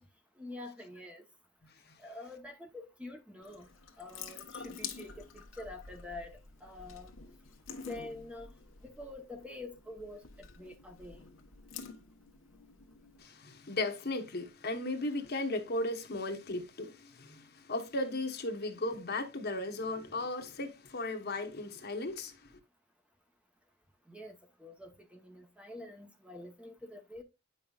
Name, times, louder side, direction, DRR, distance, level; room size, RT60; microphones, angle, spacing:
voice 1, 0.4-1.2 2.0-3.7 4.0-7.1 7.8-8.5 8.8-11.2 24.1-27.2, left 2 dB, 5° right, 0.9 m, -47 dB
Water tap faucet / Sink (filling or washing) / Drip, 3.4-13.2, left 6 dB, 90° left, 1.1 m, -48 dB
voice 2, 13.2-22.6, left 2 dB, 55° left, 1.1 m, -36 dB
9.1 x 5.5 x 2.4 m
head